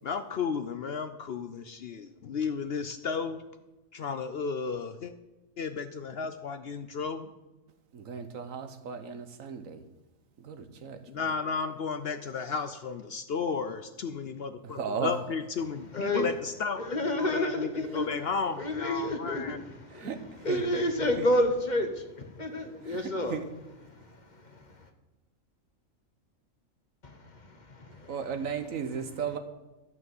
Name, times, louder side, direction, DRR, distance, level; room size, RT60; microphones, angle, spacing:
voice 1, 0.0-3.4 3.9-5.1 5.6-7.3 11.1-19.6, left 5 dB, 55° left, 10 dB, 0.8 m, -34 dB
voice 2, 7.9-9.8 10.4-11.0 14.6-15.1 19.9-20.8 21.2-21.3 22.8-23.5 28.1-29.4, right 6 dB, 80° right, 9 dB, 1.4 m, -36 dB
voice 3, 15.9-16.3 16.9-18.1 18.6-19.6 19.8-20.1 20.4-23.4 24.5-24.6 27.0-28.1, left 1 dB, 35° left, 6 dB, 1.1 m, -29 dB
12.0 x 6.0 x 7.7 m, 1.0 s
omnidirectional pair, 1.4 m